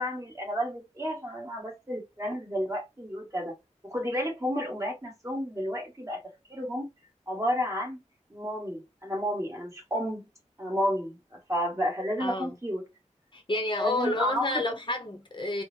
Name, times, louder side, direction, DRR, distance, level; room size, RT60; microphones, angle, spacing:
voice 1, 0.0-3.5 3.8-6.2 6.5-6.9 7.3-8.0 8.3-10.3 10.6-12.8 13.7-14.5, equal, 25° right, 1.7 m, -31 dB
voice 2, 12.2-12.5 13.3-15.6, left 1 dB, 40° left, 0.7 m, -30 dB
4.3 x 2.0 x 2.8 m
wide cardioid pair, 80°, 13 cm